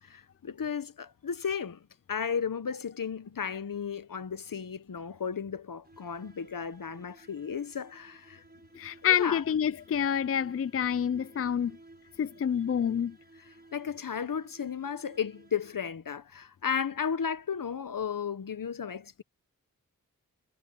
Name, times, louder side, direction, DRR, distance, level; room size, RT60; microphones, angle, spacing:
voice 1, 0.0-8.4 9.0-9.4 13.4-19.2, left 7 dB, 70° left, 1.2 m, -34 dB
sound 1, 5.8-16.1, right 2 dB, 30° right, 5.3 m, -57 dB
voice 2, 8.7-11.8 12.2-13.2, left 8 dB, 40° left, 0.4 m, -28 dB
cardioid pair, 50°, 34 cm